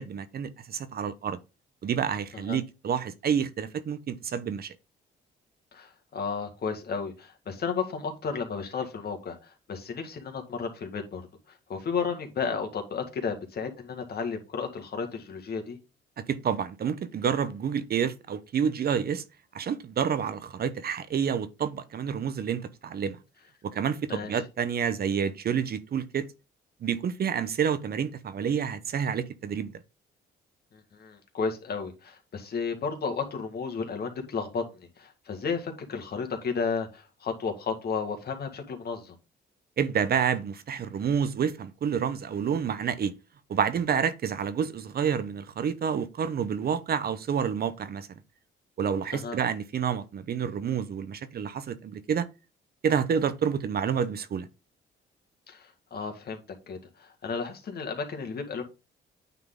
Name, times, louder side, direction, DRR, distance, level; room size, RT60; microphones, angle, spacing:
voice 1, 0.0-1.4 1.8-4.7 16.2-19.2 19.5-23.2 23.6-26.3 26.8-29.7 39.8-43.1 43.5-48.1 48.8-52.3 52.8-54.5, right 7 dB, 50° right, 0.8 m, -29 dB
voice 2, 5.7-11.2 11.5-15.8 24.1-24.4 30.7-39.2 49.1-49.4 55.5-56.4 56.7-58.6, left 5 dB, 55° left, 1.8 m, -33 dB
9.2 x 3.8 x 3.7 m
cardioid pair, 90°, 20 cm